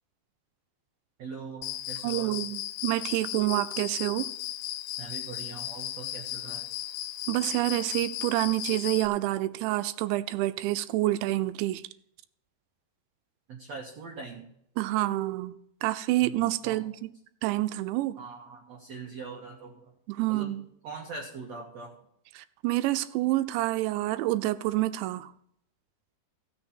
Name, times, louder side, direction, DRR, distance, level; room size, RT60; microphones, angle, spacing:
voice 1, 1.2-2.4 5.0-6.7 13.5-14.5 16.2-16.4 16.6-16.8 18.2-19.9 20.3-20.5 20.8-21.9, right 4 dB, 60° right, 1.8 m, -42 dB
Cricket, 1.6-9.1, left 13 dB, 85° left, 2.8 m, -36 dB
voice 2, 2.0-4.3 7.3-11.8 14.8-15.6 15.8-16.9 17.4-18.2 20.1-20.6 22.4-25.3, right 17 dB, 85° right, 2.9 m, -28 dB
16.5 x 6.5 x 4.4 m
omnidirectional pair, 5.2 m